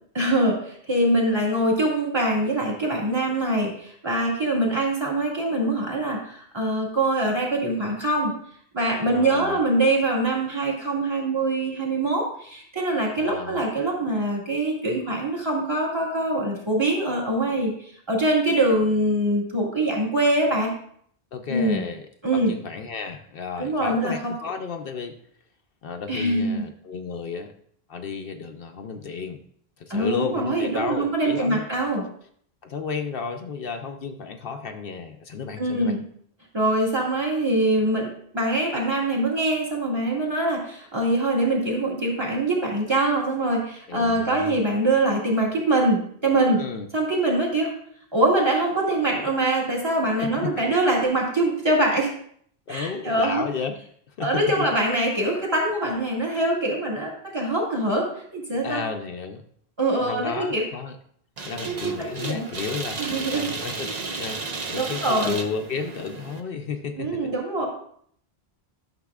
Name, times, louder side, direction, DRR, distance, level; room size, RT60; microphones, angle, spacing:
voice 1, 0.1-8.3 8.7-20.7 21.5-21.8 22.2-22.5 23.6-24.3 26.1-26.6 29.9-32.0 35.6-36.0 36.5-46.6 46.9-47.7 48.1-52.1 52.7-53.4 54.2-58.8 59.8-60.6 61.7-62.4 63.0-63.5 64.7-65.4 67.0-67.7, right 1 dB, 25° right, -3 dB, 2.0 m, -23 dB
voice 2, 9.1-9.6 13.2-13.6 21.3-22.1 22.3-25.2 25.8-27.5 27.9-29.4 29.8-31.6 32.6-36.0 43.9-44.5 46.5-46.9 50.2-50.5 52.7-53.7 54.1-54.7 58.6-59.4 60.0-61.0 61.5-63.9 64.2-67.2, left 5 dB, 65° left, 6 dB, 0.8 m, -32 dB
sound 1, 61.4-66.4, right 4 dB, 45° right, 0.8 m, -33 dB
11.5 x 6.7 x 2.4 m, 0.64 s
omnidirectional pair, 1.1 m